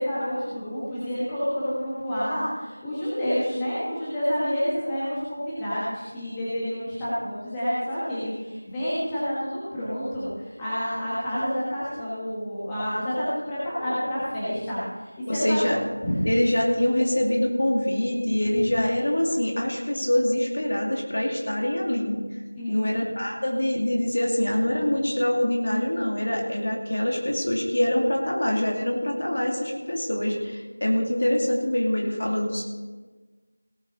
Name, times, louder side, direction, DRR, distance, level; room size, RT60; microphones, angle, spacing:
voice 1, 0.0-15.7 16.0-16.2 22.5-23.0, equal, 5° left, -12 dB, 1.3 m, -29 dB
voice 2, 15.3-15.8 16.2-22.2 22.7-32.6, left 1 dB, 40° left, -1 dB, 2.5 m, -24 dB
17.5 x 7.4 x 5.2 m, 1.3 s
figure-of-eight pair, 175°, 0 cm